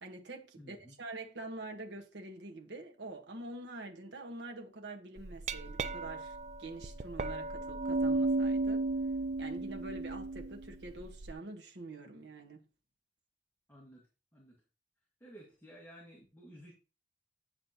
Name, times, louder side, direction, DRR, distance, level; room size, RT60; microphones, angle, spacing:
voice 1, 0.0-8.8 9.4-12.6, right 2 dB, 75° right, 1.2 m, -46 dB
voice 2, 0.6-0.9 13.7-14.1 14.3-14.5 15.2-16.7, equal, 10° left, 1.7 m, -54 dB
Glass, 5.2-11.3, right 3 dB, 40° right, 0.4 m, -34 dB
9.4 x 6.4 x 2.8 m
head